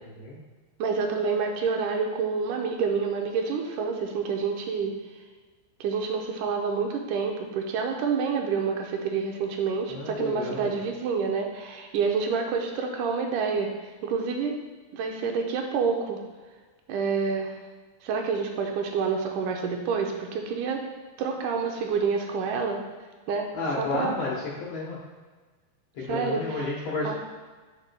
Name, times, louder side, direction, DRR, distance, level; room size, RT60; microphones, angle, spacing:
voice 1, 0.8-5.0 5.8-14.5 14.9-16.2 16.9-17.6 18.0-20.8 21.2-22.8 23.3-23.5 23.8-24.2 26.0-26.7 27.0-27.1, right 5 dB, 80° right, 3 dB, 1.8 m, -28 dB
voice 2, 9.9-10.7 23.5-25.0 25.9-27.1, left 3 dB, 75° left, -5 dB, 1.5 m, -31 dB
10.5 x 5.4 x 2.2 m, 1.4 s
omnidirectional pair, 4.3 m